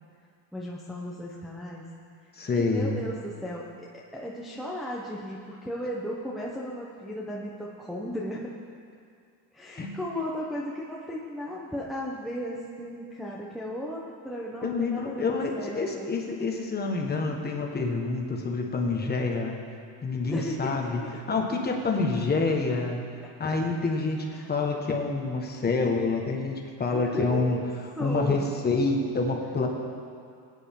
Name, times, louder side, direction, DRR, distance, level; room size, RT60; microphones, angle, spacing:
voice 1, 0.5-1.9 2.6-8.5 9.5-16.1 20.3-21.1 24.4-24.5 26.9-27.7 28.0-28.5, equal, ahead, -5 dB, 0.9 m, -35 dB
voice 2, 2.3-3.0 9.8-10.2 14.6-19.6 20.0-23.0 23.4-27.6 28.0-29.7, left 3 dB, 20° left, 1 dB, 1.5 m, -27 dB
19.5 x 9.7 x 3.8 m, 2.3 s
cardioid pair, 145°, 46 cm